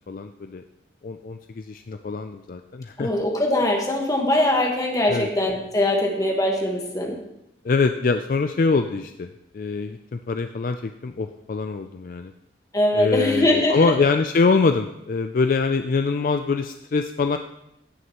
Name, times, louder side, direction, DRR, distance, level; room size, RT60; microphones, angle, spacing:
voice 1, 0.1-0.6 1.0-3.1 5.1-5.3 7.6-9.3 9.5-12.3 12.9-17.4, left 4 dB, 50° left, 7 dB, 0.4 m, -24 dB
voice 2, 3.0-7.2 12.7-13.9, left 1 dB, 20° left, 1 dB, 1.4 m, -22 dB
16.0 x 6.3 x 3.0 m, 0.84 s
head